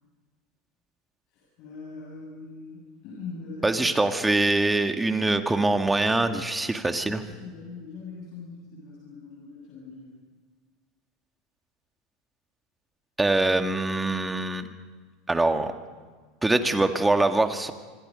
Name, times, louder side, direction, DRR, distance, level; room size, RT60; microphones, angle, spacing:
voice 1, 1.3-4.0 7.0-10.1, left 4 dB, 55° left, -3 dB, 7.6 m, -42 dB
voice 2, 3.6-7.2 13.2-14.7 15.3-15.7 16.4-17.7, right 2 dB, 10° right, 7 dB, 2.0 m, -23 dB
26.5 x 25.0 x 5.3 m, 1.4 s
hypercardioid pair, 80°, 0 cm